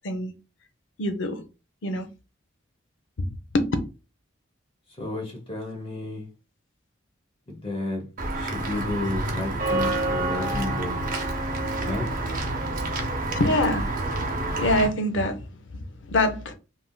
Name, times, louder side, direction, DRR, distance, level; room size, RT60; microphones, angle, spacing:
voice 1, 1.0-1.4 1.8-2.1 3.2-3.3 3.5-3.7 13.4-13.9 14.4-15.4 16.1-16.5, left 1 dB, 70° left, 0.5 m, -24 dB
voice 2, 5.0-6.2 7.5-8.1 8.3-11.0 11.9-12.1, left 2 dB, 30° left, 0.9 m, -32 dB
Walk footsteps / Bell, 8.2-14.9, right 2 dB, 45° right, 0.6 m, -28 dB
3.5 x 2.5 x 2.2 m
head